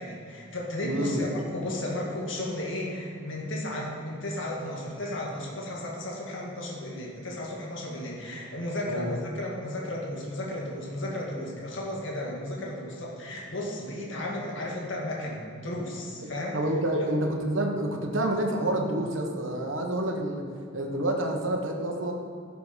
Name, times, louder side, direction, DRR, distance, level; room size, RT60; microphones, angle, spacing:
voice 1, 0.0-16.6 17.0-17.1, left 1 dB, 70° left, -2 dB, 1.9 m, -34 dB
voice 2, 0.8-1.2 8.9-9.1 16.5-20.4 20.7-22.1, right 1 dB, 75° right, 2 dB, 1.3 m, -28 dB
11.5 x 6.9 x 5.1 m, 2.4 s
head